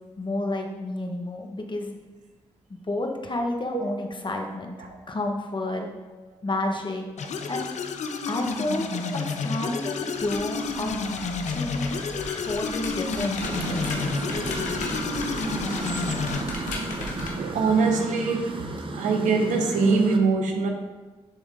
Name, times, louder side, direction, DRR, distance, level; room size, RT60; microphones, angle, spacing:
voice 1, 0.2-2.0 2.9-4.8 5.1-5.9 6.4-7.1 7.5-7.7 8.3-8.8 9.1-11.1 11.5-12.0 12.4-14.2, left 2 dB, 40° left, 2 dB, 1.3 m, -30 dB
sound 1, 7.2-16.4, left 4 dB, 65° left, 0.6 m, -30 dB
sound 2, 10.2-17.3, left 2 dB, 85° left, 0.9 m, -37 dB
sound 3, 13.4-20.2, right 2 dB, 40° right, 0.9 m, -33 dB
voice 2, 17.4-18.7 18.9-20.7, right 4 dB, 80° right, 3 dB, 0.8 m, -23 dB
10.0 x 3.5 x 3.7 m, 1.2 s
supercardioid pair, 40°, 13 cm